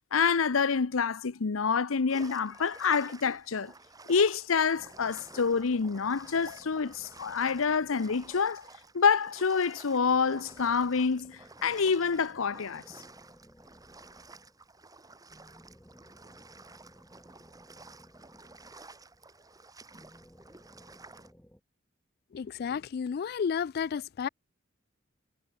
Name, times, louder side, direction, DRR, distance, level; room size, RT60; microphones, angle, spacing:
voice 1, 0.1-3.7 4.1-8.6 8.9-12.8, left 5 dB, 85° left, 0.7 m, -27 dB
sound 1, 2.1-21.3, right 3 dB, 20° right, 2.9 m, -52 dB
sound 2, 4.7-8.9 10.0-14.7 15.3-19.3 19.9-21.6, equal, 5° left, 5.3 m, -58 dB
voice 2, 22.3-24.3, left 6 dB, 50° left, 0.3 m, -32 dB
head